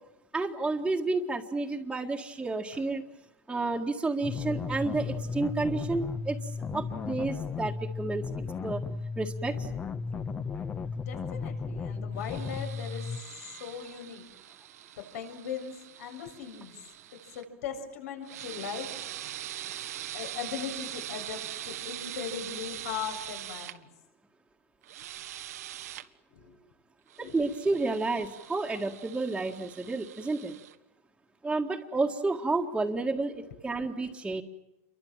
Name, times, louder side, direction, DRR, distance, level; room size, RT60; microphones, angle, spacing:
voice 1, 0.3-3.0 3.5-8.2 8.6-8.8 9.2-9.7 27.2-30.5 31.4-34.4, right 3 dB, 5° right, -4 dB, 2.0 m, -31 dB
sound 1, 4.2-13.2, left 5 dB, 20° left, 1.3 m, -35 dB
voice 2, 11.1-14.2 15.0-16.8 17.3-18.9 20.1-23.9 26.3-26.6 27.2-27.4 33.8-33.9, left 7 dB, 75° left, 5 dB, 7.3 m, -39 dB
sound 2, 12.2-17.4 18.2-23.8 24.8-26.1 27.1-30.8, right 12 dB, 85° right, 1.7 m, -42 dB
29.5 x 24.0 x 7.5 m, 0.96 s
supercardioid pair, 140°, 8 cm